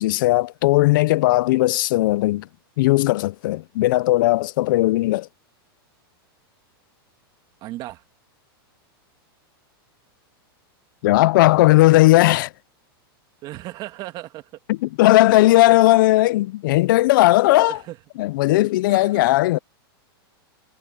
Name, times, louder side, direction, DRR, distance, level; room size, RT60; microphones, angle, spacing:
voice 1, 0.0-2.5 2.8-5.3 11.0-12.5 14.7-17.8 18.2-19.6, left 18 dB, 60° left, 0.4 m, -17 dB
voice 2, 7.6-8.0 13.4-14.5 15.5-15.6 17.6-18.0 18.9-19.2, right 16 dB, 35° right, 2.8 m, -36 dB
supercardioid pair, 145°, 13 cm